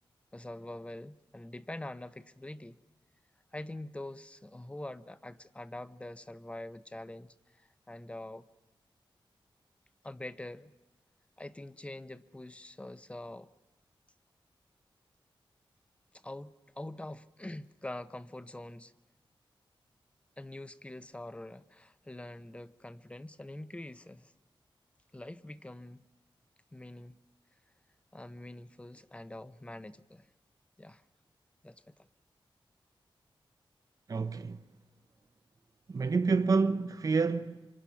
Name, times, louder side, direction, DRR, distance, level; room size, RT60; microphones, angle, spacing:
voice 1, 0.3-2.8 3.5-8.4 10.0-10.7 11.4-13.5 16.1-18.9 20.4-24.3 25.1-26.0 26.7-27.2 28.1-30.3 30.8-31.0 31.6-31.9, left 1 dB, 15° left, 0.7 m, -44 dB
voice 2, 34.1-34.6 35.9-37.7, right 4 dB, 40° right, 0.7 m, -28 dB
26.5 x 25.5 x 5.8 m
wide cardioid pair, 145°, 9 cm